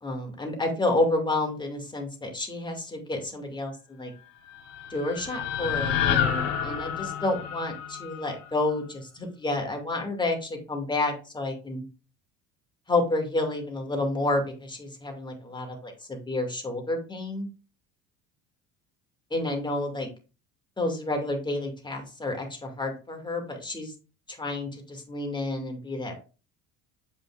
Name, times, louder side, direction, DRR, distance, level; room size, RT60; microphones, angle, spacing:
voice 1, 0.0-4.1 4.9-11.8 12.9-17.5 19.3-20.1 20.8-23.9 24.4-26.2, left 2 dB, 15° left, 2 dB, 2.2 m, -30 dB
sound 1, 4.3-8.6, left 8 dB, 75° left, 2.1 m, -29 dB
7.6 x 5.5 x 2.4 m, 0.33 s
supercardioid pair, 100°, 30 cm